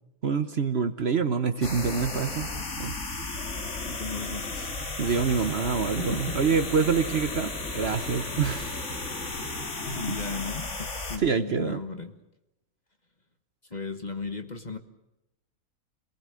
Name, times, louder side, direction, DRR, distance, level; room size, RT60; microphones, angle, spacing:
voice 1, 0.2-2.5 2.8-3.0 5.0-8.8 10.1-10.2 11.2-11.8, right 5 dB, 50° right, 10 dB, 1.2 m, -26 dB
sound 1, 1.6-11.2, left 2 dB, 55° left, 2.5 m, -34 dB
voice 2, 3.9-4.7 6.0-6.4 9.9-12.1 13.7-14.8, left 4 dB, 30° left, 7 dB, 1.4 m, -36 dB
27.0 x 19.0 x 7.6 m, 0.91 s
omnidirectional pair, 1.5 m